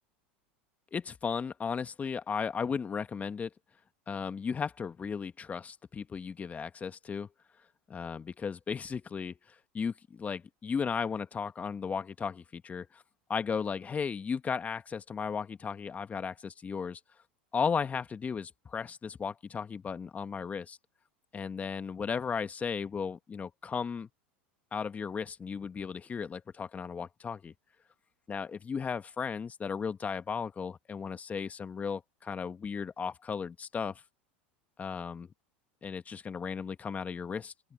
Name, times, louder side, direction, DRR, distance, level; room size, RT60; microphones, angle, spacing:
voice 1, 0.9-3.5 4.1-7.3 7.9-9.4 9.7-13.0 13.3-17.0 17.5-20.8 21.3-24.1 24.7-27.5 28.3-34.0 34.8-35.3 35.8-37.5, left 6 dB, 25° left, 1.6 m, -35 dB
open air
hypercardioid pair, 95°, 6 cm